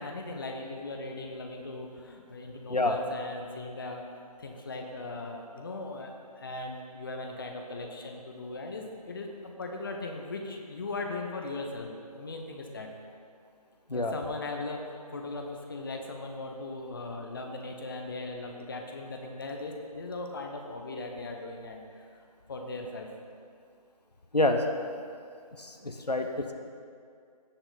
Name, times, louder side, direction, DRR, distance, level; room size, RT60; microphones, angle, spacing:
voice 1, 0.0-4.0 4.4-12.9 13.9-23.1, left 2 dB, 35° left, 2 dB, 0.9 m, -39 dB
voice 2, 24.3-24.7 25.6-26.5, left 2 dB, 85° left, 5 dB, 1.0 m, -27 dB
17.0 x 6.0 x 4.0 m, 2.3 s
figure-of-eight pair, 155°, 20 cm